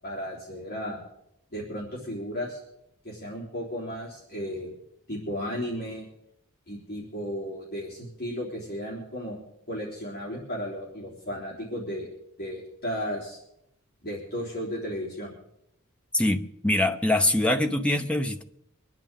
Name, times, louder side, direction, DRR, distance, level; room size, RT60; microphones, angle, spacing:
voice 1, 0.0-1.0 1.5-2.6 3.0-4.7 5.1-6.1 6.7-9.4 9.7-12.1 12.4-13.4 14.0-15.3, equal, 45° left, -5 dB, 3.5 m, -34 dB
voice 2, 16.1-18.4, left 1 dB, 5° left, 5 dB, 0.8 m, -24 dB
24.5 x 10.5 x 3.8 m, 0.79 s
head